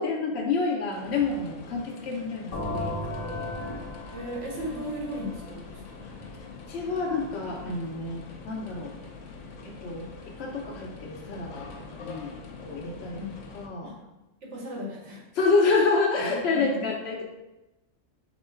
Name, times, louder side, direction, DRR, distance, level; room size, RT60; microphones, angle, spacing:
voice 1, 0.0-3.5 6.7-8.9 9.6-13.2 13.5-13.9 15.3-17.2, left 4 dB, 60° left, -2 dB, 0.8 m, -28 dB
sound 1, 0.9-13.7, left 4 dB, 90° left, 1.1 m, -44 dB
sound 2, 2.5-6.2, left 2 dB, 40° left, 0.4 m, -35 dB
voice 2, 4.1-6.2 13.2-13.4 13.8-14.0 14.4-15.2 16.5-16.9, equal, 60° right, -2 dB, 1.3 m, -36 dB
3.7 x 3.0 x 4.4 m, 1.0 s
omnidirectional pair, 1.4 m